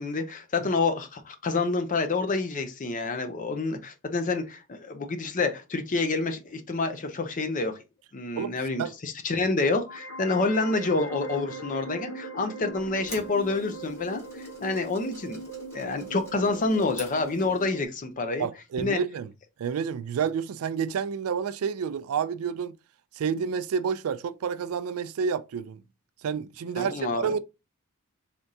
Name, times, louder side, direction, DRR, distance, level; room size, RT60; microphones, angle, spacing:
voice 1, 0.0-7.8 8.1-15.4 15.7-18.5 18.8-19.0 26.8-27.3, left 3 dB, 35° left, 0.5 m, -28 dB
voice 2, 8.4-8.9 18.4-19.3 19.6-22.8 23.2-25.8 26.2-27.4, right 6 dB, 70° right, 0.3 m, -29 dB
sound 1, 9.9-17.9, right 2 dB, 85° left, 0.9 m, -40 dB
sound 2, 12.7-17.8, left 1 dB, 10° left, 1.3 m, -48 dB
3.6 x 3.4 x 2.7 m
head